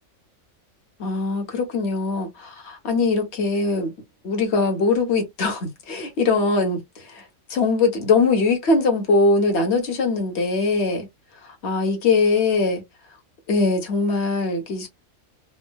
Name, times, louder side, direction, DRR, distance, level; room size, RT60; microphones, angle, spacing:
voice 1, 1.0-3.9 4.2-7.2 7.5-11.1 11.4-12.8 13.5-14.9, left 3 dB, 55° left, 1.3 m, -21 dB
3.6 x 2.4 x 2.2 m
omnidirectional pair, 1.4 m